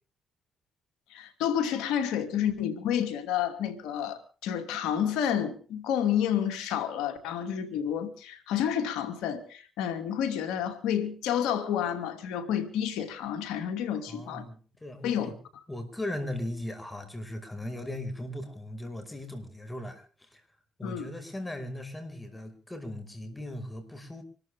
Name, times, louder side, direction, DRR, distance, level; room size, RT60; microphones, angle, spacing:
voice 1, 1.1-14.4 15.0-15.6 20.8-21.1, left 9 dB, 90° left, 2.7 m, -30 dB
voice 2, 14.1-15.3 15.7-20.4 20.8-24.2, left 1 dB, 15° left, 5.6 m, -38 dB
26.0 x 13.5 x 3.7 m
supercardioid pair, 70°, 0 cm